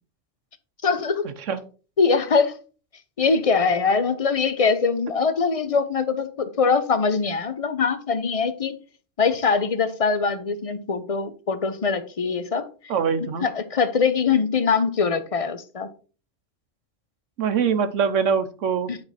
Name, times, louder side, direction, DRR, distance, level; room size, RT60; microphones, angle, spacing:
voice 1, 0.8-1.3 2.0-2.5 3.2-8.8 9.2-12.7 13.4-15.9 18.9-19.0, left 5 dB, 35° left, 0.6 m, -22 dB
voice 2, 12.9-13.5 17.4-18.9, right 6 dB, 80° right, 1.2 m, -23 dB
9.6 x 4.5 x 4.1 m
omnidirectional pair, 1.3 m